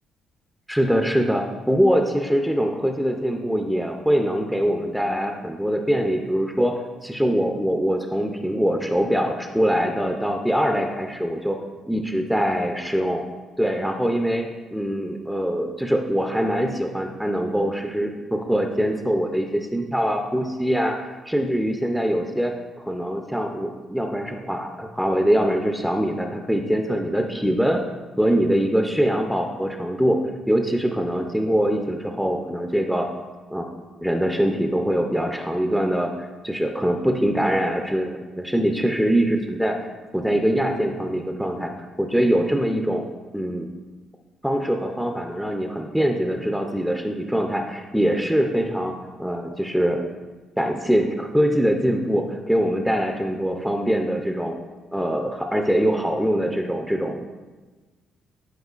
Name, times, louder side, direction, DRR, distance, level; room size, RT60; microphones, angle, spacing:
voice 1, 0.7-6.7 7.0-11.6 11.9-13.2 13.6-27.8 28.2-30.2 30.5-33.1 33.5-33.7 34.0-39.8 40.1-41.7 42.0-43.0 43.3-43.7 44.4-50.0 50.6-54.5 54.9-57.2, equal, ahead, 3 dB, 0.4 m, -23 dB
11.5 x 4.9 x 2.4 m, 1.3 s
cardioid pair, 145°, 0 cm